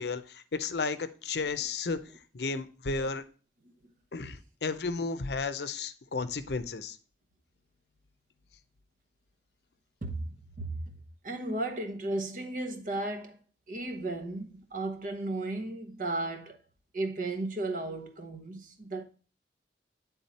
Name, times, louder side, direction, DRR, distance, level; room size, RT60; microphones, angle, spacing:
voice 1, 0.0-2.0 2.3-3.2 4.1-7.0, left 4 dB, 65° left, 0.6 m, -33 dB
voice 2, 10.0-11.0 11.2-13.4 13.7-16.6 16.9-19.0, right 2 dB, 50° right, 1.0 m, -35 dB
9.7 x 3.7 x 4.1 m
head